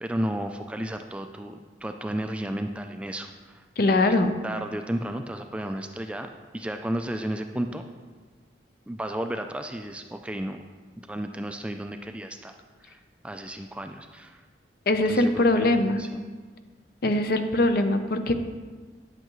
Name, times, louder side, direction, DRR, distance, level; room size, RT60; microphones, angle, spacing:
voice 1, 0.0-3.6 4.4-7.8 8.9-10.6 11.0-12.5 12.8-14.4 15.1-16.2, right 1 dB, 5° right, 6 dB, 0.3 m, -33 dB
voice 2, 3.8-4.3 14.9-16.0 17.0-18.3, left 2 dB, 55° left, 8 dB, 0.6 m, -22 dB
9.5 x 7.8 x 3.1 m, 1.4 s
head